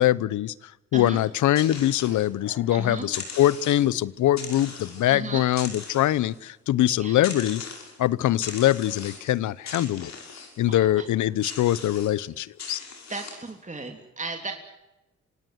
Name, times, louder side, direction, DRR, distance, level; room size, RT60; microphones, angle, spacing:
voice 1, 0.0-7.7 8.0-10.1 10.6-12.8, left 13 dB, 85° left, 21 dB, 0.8 m, -23 dB
sound 1, 1.2-2.7 3.0-4.0 4.4-5.1 5.5-6.5 7.2-8.0 8.4-9.4 9.7-10.6 11.4-12.1 12.6-13.5, left 5 dB, 65° left, 6.2 m, -40 dB
voice 2, 2.7-3.1 5.1-5.5 6.8-7.2 10.7-11.0 11.4-11.6 13.1-14.5, right 3 dB, 25° right, 4 dB, 3.2 m, -35 dB
26.0 x 17.5 x 8.0 m, 0.96 s
cardioid pair, 60°, 29 cm